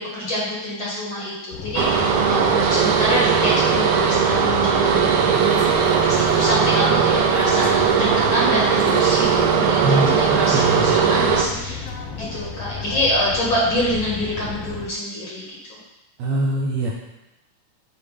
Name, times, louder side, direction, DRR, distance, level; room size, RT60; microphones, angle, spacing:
voice 1, 0.0-11.8 12.1-15.4 15.7-15.8, left 1 dB, 45° left, -6 dB, 2.1 m, -26 dB
sound 1, 1.5-14.9, left 5 dB, 75° left, 1.4 m, -33 dB
sound 2, 1.8-11.4, right 7 dB, 90° right, 2.2 m, -18 dB
voice 2, 9.8-10.2 10.5-10.9 16.2-16.9, right 1 dB, 70° right, -2 dB, 1.7 m, -22 dB
9.0 x 3.2 x 5.0 m, 0.96 s
omnidirectional pair, 3.6 m